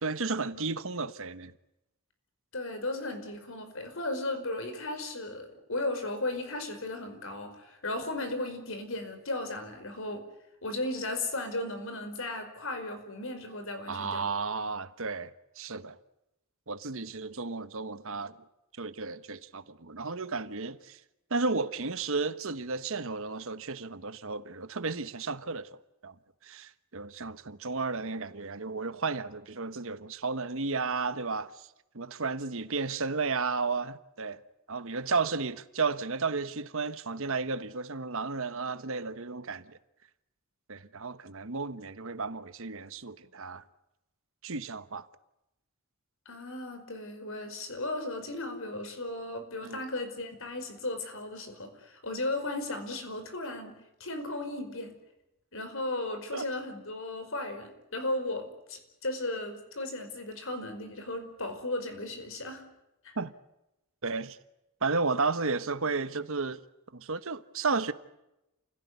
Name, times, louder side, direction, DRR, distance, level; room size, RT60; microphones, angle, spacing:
voice 1, 0.0-1.5 13.9-15.3 15.6-16.0 16.7-18.4 18.8-21.0 21.3-25.7 26.0-26.1 26.4-31.7 31.9-34.4 34.7-39.8 40.7-43.6 44.4-45.1 49.6-49.8 56.3-56.4 63.2-63.3 64.0-64.4 64.8-66.6 66.9-67.9, right 4 dB, 60° right, 1.2 m, -33 dB
voice 2, 2.5-10.3 10.6-14.3 46.2-54.9 55.5-62.6 63.0-63.2, left 2 dB, 60° left, 5.1 m, -36 dB
29.0 x 17.0 x 9.6 m
head